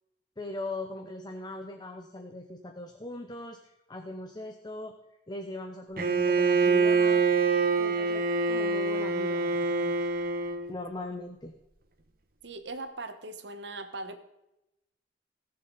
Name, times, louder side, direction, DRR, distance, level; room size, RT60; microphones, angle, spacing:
voice 1, 0.4-4.9 5.3-7.3 7.8-10.1 10.7-11.5, left 2 dB, 25° left, 5 dB, 0.9 m, -40 dB
Bowed string instrument, 6.0-10.7, right 4 dB, 55° right, 1.1 m, -25 dB
voice 2, 12.4-14.2, right 2 dB, 75° right, 8 dB, 1.2 m, -39 dB
19.0 x 6.8 x 4.0 m, 0.91 s
head